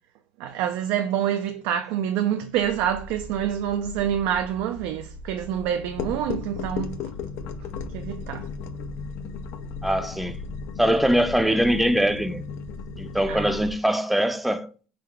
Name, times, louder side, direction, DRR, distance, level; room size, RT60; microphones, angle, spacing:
voice 1, 0.4-7.1 7.9-8.5 13.3-13.6, right 10 dB, 80° right, 0.4 m, -27 dB
sound 1, 2.5-13.7, left 5 dB, 75° left, 0.5 m, -36 dB
voice 2, 9.8-10.4 10.8-12.4 13.0-14.7, equal, ahead, 0.5 m, -22 dB
3.8 x 3.3 x 3.2 m
supercardioid pair, 105°, 4 cm